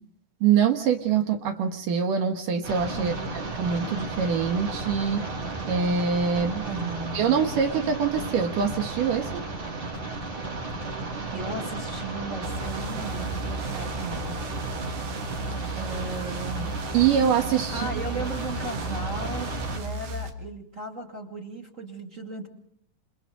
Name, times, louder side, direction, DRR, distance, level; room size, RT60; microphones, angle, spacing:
voice 1, 0.4-5.3 5.7-6.7 7.1-9.5 15.6-15.8 16.9-17.9, right 7 dB, 70° right, 5 dB, 2.8 m, -24 dB
sound 1, 2.6-19.8, right 3 dB, 55° right, 6.8 m, -34 dB
voice 2, 3.0-3.4 6.6-7.2 11.3-14.6 15.8-16.7 17.7-22.5, right 2 dB, 25° right, 2 dB, 2.3 m, -36 dB
sound 2, 12.4-20.3, right 2 dB, 85° right, 3.7 m, -35 dB
28.5 x 28.0 x 3.8 m, 0.65 s
omnidirectional pair, 4.1 m